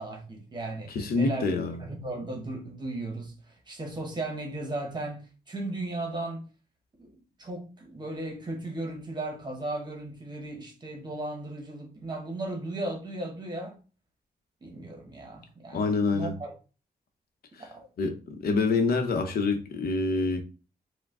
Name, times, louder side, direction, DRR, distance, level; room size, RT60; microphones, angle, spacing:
voice 1, 0.0-1.5 1.8-3.3 3.7-6.4 7.0-7.1 7.4-13.8 14.6-16.5 17.6-17.9, right 2 dB, 30° right, 1.0 m, -36 dB
voice 2, 0.9-1.8 15.7-16.3 17.5-17.6 18.0-20.4, left 3 dB, 70° left, 0.8 m, -26 dB
4.6 x 2.2 x 3.6 m
wide cardioid pair, 160°, 16 cm